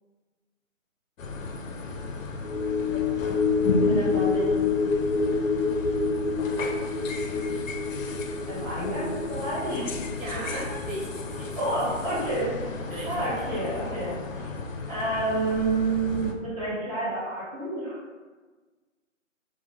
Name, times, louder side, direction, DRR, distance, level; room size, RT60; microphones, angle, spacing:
sound 1, 1.2-16.3, left 2 dB, 75° left, 0.5 m, -34 dB
sound 2, 2.4-13.0 13.4-13.5, left 4 dB, 30° left, 0.5 m, -28 dB
voice 1, 3.9-4.5 8.5-9.9 11.6-12.6 13.1-14.5 14.9-18.0, right 2 dB, 30° right, -9 dB, 0.9 m, -29 dB
voice 2, 10.2-11.6 12.9-13.1, right 1 dB, 80° right, -4 dB, 0.8 m, -37 dB
2.5 x 2.1 x 2.9 m, 1.3 s
figure-of-eight pair, 160°, 40 cm